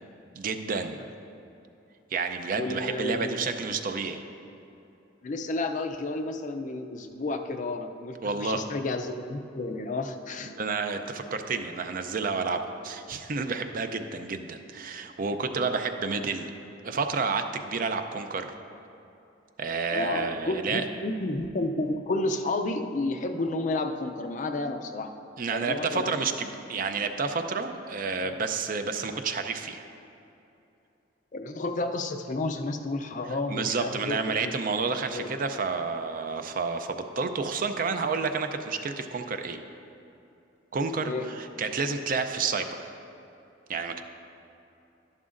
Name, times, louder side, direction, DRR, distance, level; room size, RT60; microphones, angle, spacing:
voice 1, 0.3-1.0 2.1-4.2 8.2-8.6 10.4-16.5 16.8-18.5 19.6-20.8 25.4-29.9 33.5-39.6 40.7-42.9 43.7-44.0, right 4 dB, 45° right, 7 dB, 0.5 m, -30 dB
voice 2, 2.6-3.4 5.2-10.5 19.9-25.1 25.5-26.1 28.2-28.3 31.3-34.5 35.1-35.3 41.0-41.3, left 2 dB, 40° left, 6 dB, 0.4 m, -31 dB
11.0 x 11.0 x 2.5 m, 2.8 s
head